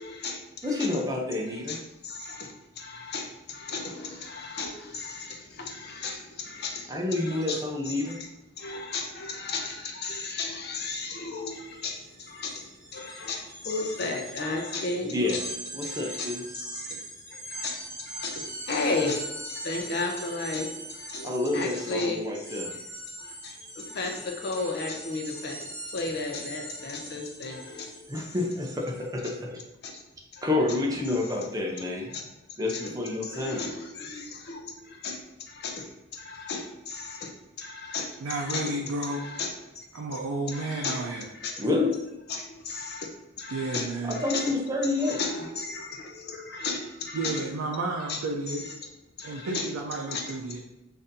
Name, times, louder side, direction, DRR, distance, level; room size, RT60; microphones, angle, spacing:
voice 1, 0.0-1.0 1.5-7.6 7.8-8.3 8.6-15.4 15.8-17.0 17.3-22.6 23.2-28.4 29.2-29.3 29.8-29.9 30.3-30.8 31.1-31.4 32.1-38.8 39.0-39.9 40.1-40.2 40.5-41.1 41.3-41.6 42.3-43.1 43.4-44.5 44.8-47.5 48.1-48.2 48.5-48.7 49.2-49.7 50.1-50.3, left 3 dB, 50° left, 2 dB, 0.5 m, -35 dB
voice 2, 0.6-1.8 6.9-8.2 15.1-15.4 15.7-16.4 21.2-22.7 28.1-29.6 30.4-32.2 32.6-33.7 41.6-41.9 44.1-45.2, left 2 dB, 15° right, -1 dB, 0.5 m, -28 dB
sound 1, 11.4-11.6 11.9-29.1, right 1 dB, 40° right, 1.2 m, -41 dB
voice 3, 38.2-39.3 39.9-41.3 43.5-44.2 47.1-48.6 49.2-50.6, right 2 dB, 85° right, -1 dB, 0.4 m, -32 dB
4.0 x 2.6 x 2.6 m, 1.0 s
head